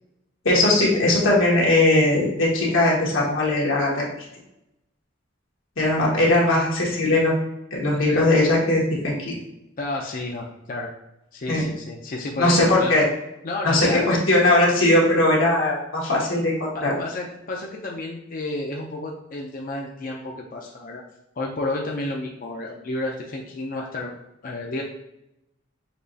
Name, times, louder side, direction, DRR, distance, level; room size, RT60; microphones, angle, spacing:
voice 1, 0.4-4.0 5.8-7.4 7.7-9.3 11.5-11.6 12.4-13.0 13.6-16.9, left 1 dB, 90° left, -4 dB, 1.4 m, -19 dB
voice 2, 9.8-10.9 11.3-12.9 13.4-14.1 16.7-21.0 21.4-24.1 24.4-24.8, left 2 dB, 45° left, 0 dB, 0.5 m, -31 dB
6.0 x 2.9 x 2.7 m, 0.88 s
head